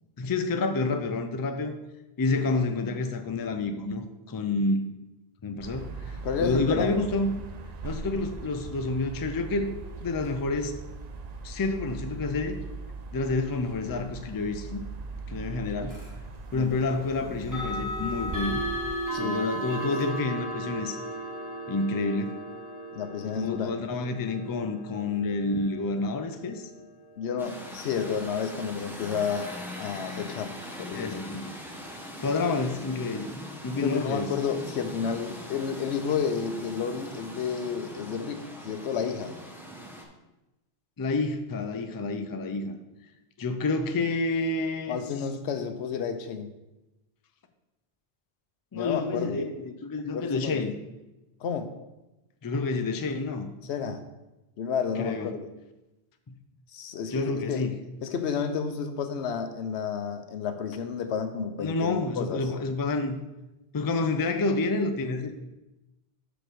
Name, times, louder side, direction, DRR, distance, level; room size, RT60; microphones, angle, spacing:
voice 1, 0.2-1.8 2.2-4.9 5.4-7.3 7.8-9.7 10.0-10.7 11.4-12.6 13.1-14.8 15.3-16.0 16.5-18.6 19.2-21.0 21.7-22.4 23.2-26.7 30.9-31.5 32.2-33.3 33.6-34.3 41.0-42.8 43.4-45.0 48.7-50.7 52.4-53.5 55.0-55.3 56.3-56.4 57.1-57.7 61.6-63.2 63.7-65.5, left 3 dB, 35° left, 7 dB, 0.3 m, -29 dB
sound 1, 5.6-19.0, right 4 dB, 50° right, 0.6 m, -40 dB
voice 2, 6.2-7.0 16.5-16.7 19.1-19.5 22.9-23.7 27.2-29.5 29.8-30.5 30.8-31.2 33.7-39.3 44.9-46.5 48.7-49.4 50.1-50.6 51.4-51.7 53.6-54.0 54.6-55.5 56.7-57.6 58.0-62.5, left 6 dB, 90° left, 9 dB, 0.9 m, -31 dB
sound 2, 15.9-16.1 17.4-28.3, equal, 15° right, 1.7 m, -36 dB
sound 3, 27.4-40.0, equal, ahead, 0.7 m, -41 dB
5.0 x 5.0 x 6.2 m, 1.0 s
omnidirectional pair, 1.1 m